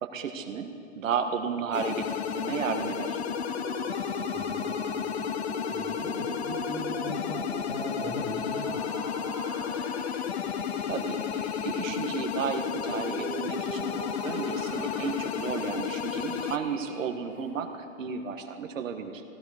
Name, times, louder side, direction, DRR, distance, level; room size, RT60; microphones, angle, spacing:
voice 1, 0.0-3.2 10.9-19.2, right 6 dB, 75° right, 6 dB, 1.5 m, -33 dB
sound 1, 1.7-16.6, left 8 dB, 55° left, 0.8 m, -32 dB
sound 2, 2.8-9.7 12.3-15.2, right 8 dB, 50° right, 0.8 m, -42 dB
voice 2, 4.3-4.8 5.7-7.4 7.7-8.9, left 2 dB, 25° left, 1 dB, 1.5 m, -39 dB
sound 3, 8.1-17.8, right 2 dB, 5° right, 0.7 m, -46 dB
16.0 x 12.0 x 5.0 m, 2.8 s
hypercardioid pair, 165°, 39 cm